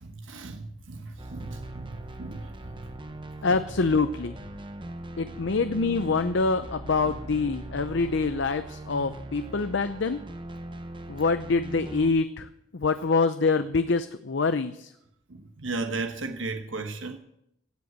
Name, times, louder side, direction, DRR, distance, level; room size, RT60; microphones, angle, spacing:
voice 1, 0.0-2.9 5.3-5.4 7.0-7.1 15.3-17.2, right 3 dB, 90° right, 5 dB, 1.2 m, -36 dB
sound 1, 1.2-12.1, right 1 dB, 25° right, 1.1 m, -40 dB
voice 2, 3.4-4.4 5.2-10.2 11.1-12.5 12.7-14.9, left 4 dB, 65° left, 11 dB, 0.6 m, -25 dB
16.0 x 8.0 x 8.1 m, 0.79 s
head